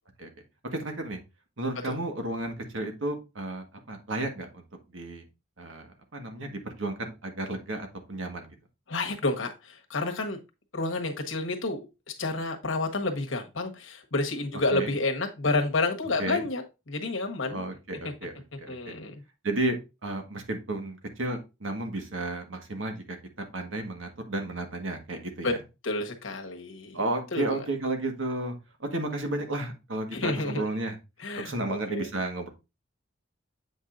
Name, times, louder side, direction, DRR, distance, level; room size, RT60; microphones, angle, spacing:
voice 1, 0.7-1.2 1.6-4.6 4.9-5.2 5.6-5.8 6.1-8.5 14.7-14.9 16.2-16.5 17.5-18.3 18.6-18.9 19.4-23.2 23.5-25.6 26.9-31.0 31.4-32.5, right 2 dB, 85° right, 1.6 m, -32 dB
voice 2, 8.9-10.4 10.7-11.8 12.2-17.6 18.7-19.1 25.4-25.5 25.8-27.0 27.3-27.5 30.1-30.7 31.2-32.1, left 2 dB, 85° left, 1.4 m, -30 dB
8.0 x 5.4 x 2.6 m
head